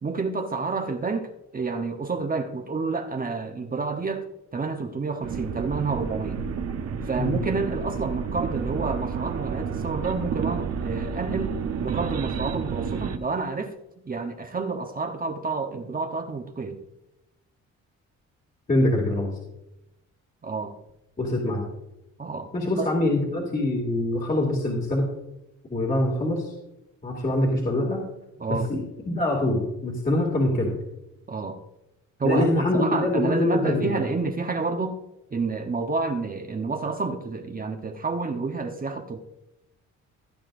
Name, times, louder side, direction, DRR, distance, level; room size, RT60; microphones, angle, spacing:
voice 1, 0.0-4.3 4.5-6.4 7.1-13.7 14.0-16.8 20.4-20.8 22.2-22.5 22.8-22.9 28.4-28.7 31.3-31.6 32.2-35.0 35.3-39.2, right 4 dB, 30° right, 4 dB, 1.0 m, -29 dB
sound 1, 5.2-13.2, right 6 dB, 55° right, 1.0 m, -30 dB
voice 2, 18.7-19.3 21.2-21.6 22.5-25.0 25.7-26.5 27.0-28.0 28.5-28.8 29.1-30.7 32.2-34.0, left 1 dB, 30° left, -2 dB, 2.5 m, -24 dB
16.5 x 8.8 x 2.6 m, 0.91 s
cardioid pair, 90°, 30 cm